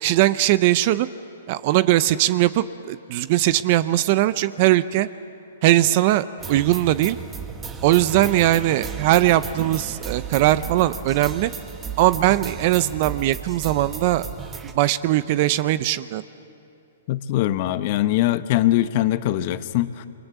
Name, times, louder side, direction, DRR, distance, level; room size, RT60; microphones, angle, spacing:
voice 1, 0.0-1.1 1.5-5.1 5.6-7.2 7.8-11.5 12.0-14.3 14.7-16.2, right 15 dB, 40° right, 15 dB, 0.7 m, -20 dB
sound 1, 6.4-14.7, right 6 dB, 15° right, 1.8 m, -35 dB
voice 2, 17.1-20.1, left 14 dB, 45° left, 12 dB, 1.1 m, -22 dB
28.5 x 25.0 x 8.2 m, 2.8 s
hypercardioid pair, 145°, 0 cm